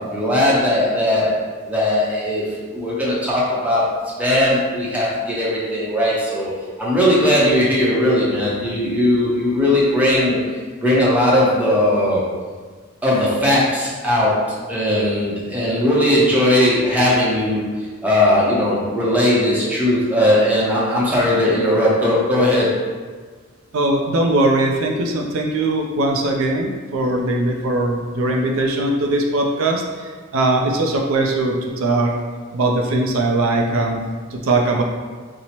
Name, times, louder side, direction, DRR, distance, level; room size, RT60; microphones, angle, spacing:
voice 1, 0.0-1.4 1.7-3.9 4.2-6.5 6.8-10.4 10.8-12.3 13.0-22.7, left 1 dB, 5° right, -7 dB, 0.6 m, -18 dB
voice 2, 23.7-32.1 32.5-34.0 34.3-34.8, right 2 dB, 70° right, 1 dB, 0.4 m, -20 dB
4.4 x 2.0 x 2.8 m, 1.5 s
head